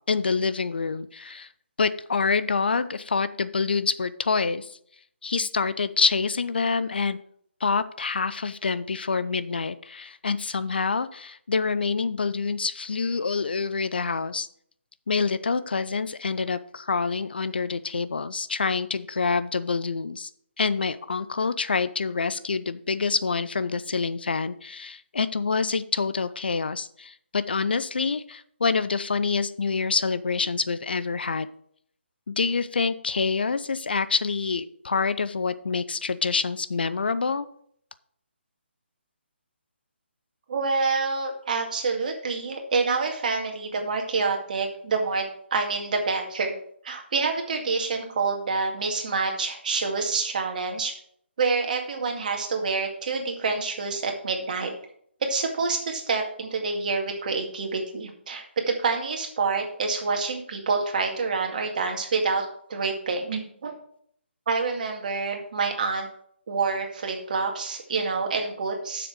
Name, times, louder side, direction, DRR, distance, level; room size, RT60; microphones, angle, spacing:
voice 1, 0.1-1.5 1.8-4.8 5.2-7.2 7.6-14.5 15.1-20.3 20.6-31.5 32.3-37.5, left 4 dB, 55° left, 14 dB, 0.6 m, -26 dB
voice 2, 40.5-46.5 46.8-50.9 51.4-54.7 55.2-63.7 64.5-66.1 66.5-69.1, right 4 dB, 40° right, 3 dB, 2.0 m, -27 dB
7.9 x 6.7 x 6.3 m, 0.65 s
figure-of-eight pair, 140°, 6 cm